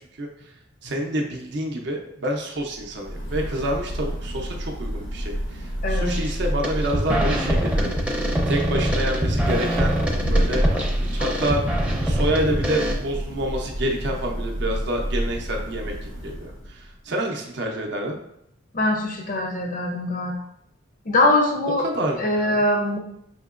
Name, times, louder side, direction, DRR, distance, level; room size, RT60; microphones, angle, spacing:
voice 1, 0.8-10.7 11.0-18.2 21.8-22.6, right 1 dB, 60° right, 1 dB, 0.5 m, -28 dB
Thunder / Rain, 2.6-17.0, equal, 90° left, 1.1 m, -28 dB
voice 2, 5.8-6.2 18.7-20.4 21.1-21.9 22.2-23.0, left 1 dB, 45° left, 2 dB, 0.5 m, -22 dB
sound 1, 6.1-6.3 6.6-12.9, equal, 5° right, 0.5 m, -24 dB
5.7 x 2.8 x 2.4 m, 0.76 s
head